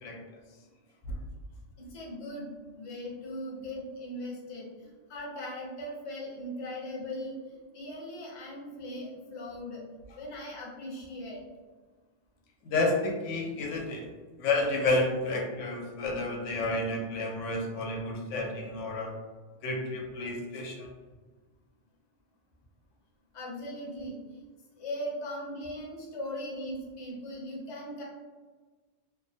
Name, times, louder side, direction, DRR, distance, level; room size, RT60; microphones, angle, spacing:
voice 1, 1.8-2.5 2.7-7.4 7.7-9.8 10.2-11.4 23.3-24.4 24.8-28.0, left 1 dB, 40° left, -4 dB, 0.5 m, -39 dB
voice 2, 12.6-14.0 14.4-19.1 19.6-20.9, left 2 dB, 90° left, 1 dB, 0.9 m, -30 dB
2.4 x 2.2 x 2.6 m, 1.4 s
omnidirectional pair, 1.2 m